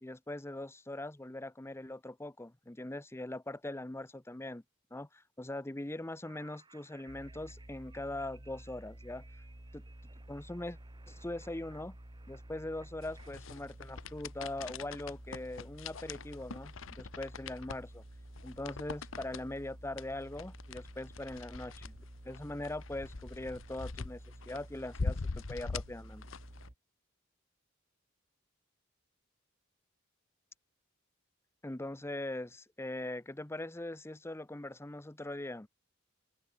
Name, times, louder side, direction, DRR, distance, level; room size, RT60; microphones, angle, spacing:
voice 1, 0.0-4.6 4.9-9.2 9.7-9.8 10.3-10.8 11.1-12.0 12.3-18.0 18.4-21.9 22.2-26.2 31.6-35.7, left 1 dB, 15° left, 0.8 m, -41 dB
sound 1, 6.2-13.3, right 4 dB, 25° right, 4.5 m, -63 dB
sound 2, 7.1-26.7, right 1 dB, 40° right, 1.7 m, -51 dB
sound 3, 13.0-26.7, left 4 dB, 75° left, 0.8 m, -43 dB
open air
head